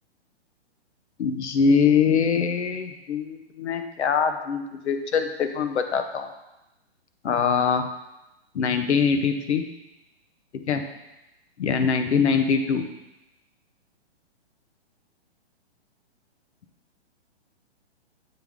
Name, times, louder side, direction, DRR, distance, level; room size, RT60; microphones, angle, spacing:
voice 1, 1.2-6.3 7.2-7.9 8.5-9.6 10.5-10.8 11.6-12.8, left 6 dB, 85° left, 7 dB, 0.7 m, -23 dB
7.8 x 3.5 x 3.5 m, 0.96 s
hypercardioid pair, 155°, 33 cm